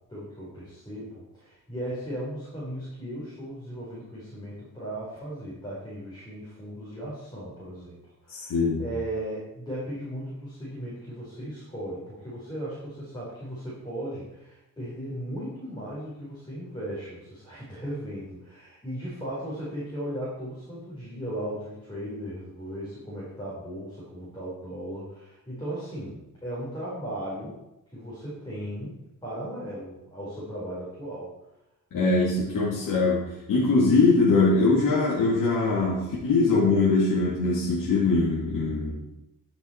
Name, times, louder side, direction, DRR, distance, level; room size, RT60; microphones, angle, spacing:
voice 1, 0.1-27.6 27.9-29.0 29.2-31.3, right 1 dB, 15° left, -8 dB, 4.1 m, -37 dB
voice 2, 8.3-8.8 31.9-39.1, left 3 dB, 75° left, -6 dB, 2.3 m, -22 dB
12.5 x 6.1 x 4.4 m, 0.92 s
cardioid pair, 110°, 33 cm